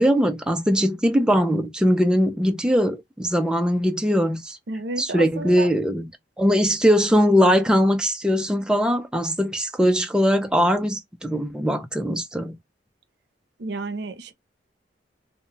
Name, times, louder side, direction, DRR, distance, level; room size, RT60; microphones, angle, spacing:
voice 1, 0.0-4.6 5.0-6.1 6.4-12.6, equal, 5° right, 0.3 m, -21 dB
voice 2, 4.7-5.7 13.6-14.3, right 3 dB, 70° right, 0.5 m, -31 dB
2.2 x 2.1 x 3.8 m
head